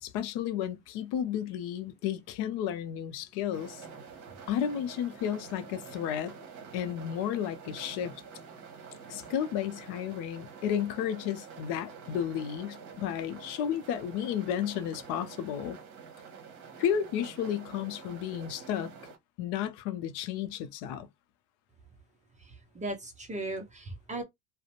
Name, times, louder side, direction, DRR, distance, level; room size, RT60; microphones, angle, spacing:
voice 1, 0.0-3.8 4.5-6.4 6.7-8.2 9.1-15.8 16.8-18.9 19.4-21.1, left 9 dB, 65° left, 0.6 m, -32 dB
sound 1, 3.5-19.2, right 6 dB, 40° right, 1.0 m, -48 dB
voice 2, 22.4-24.2, right 2 dB, 15° right, 0.5 m, -37 dB
2.4 x 2.1 x 2.8 m
cardioid pair, 130°, 44 cm